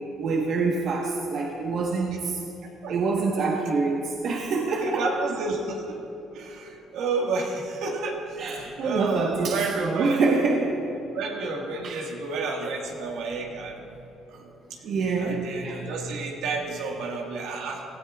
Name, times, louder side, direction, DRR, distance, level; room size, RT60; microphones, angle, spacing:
voice 1, 0.2-2.4 2.9-5.0 8.4-10.8 11.8-12.0 12.6-12.7 14.8-16.2 16.8-16.9, right 4 dB, 60° right, -1 dB, 1.2 m, -26 dB
voice 2, 4.8-6.0 6.3-10.2 11.1-13.8 14.3-14.5 15.2-17.8, right 3 dB, 80° right, 0 dB, 1.7 m, -30 dB
17.5 x 13.5 x 2.4 m, 2.9 s
cardioid pair, 90°, 0 cm